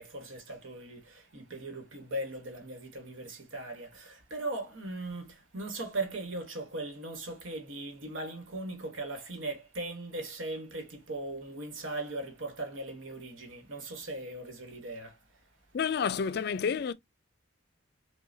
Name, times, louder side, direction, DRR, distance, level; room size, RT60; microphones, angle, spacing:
voice 1, 0.0-15.4, right 2 dB, 80° right, 1.4 m, -39 dB
voice 2, 15.7-16.9, left 6 dB, 50° left, 0.3 m, -29 dB
5.5 x 2.3 x 2.6 m
head